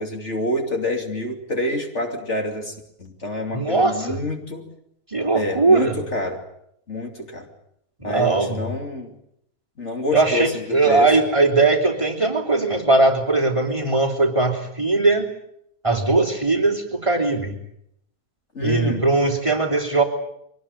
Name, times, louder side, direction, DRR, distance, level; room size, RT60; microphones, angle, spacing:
voice 1, 0.0-4.7 5.3-6.4 6.9-7.5 8.0-9.1 9.8-11.1 18.5-19.1, left 1 dB, 50° left, 3 dB, 3.1 m, -27 dB
voice 2, 3.5-4.2 5.1-6.0 8.0-8.6 10.1-15.3 15.8-17.5 18.6-20.0, right 3 dB, 20° right, 0 dB, 3.2 m, -19 dB
23.5 x 19.0 x 8.9 m, 0.75 s
omnidirectional pair, 1.6 m